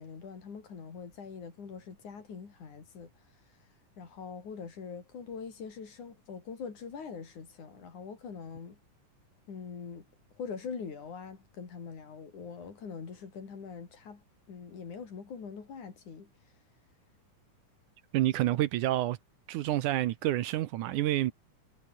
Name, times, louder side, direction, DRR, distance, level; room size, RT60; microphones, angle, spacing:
voice 1, 0.0-3.1 4.0-8.8 9.5-10.1 10.4-14.2 14.5-16.3, left 6 dB, 60° left, 5.2 m, -43 dB
voice 2, 18.1-19.2 19.5-21.3, right 14 dB, 75° right, 2.2 m, -28 dB
omnidirectional pair, 3.9 m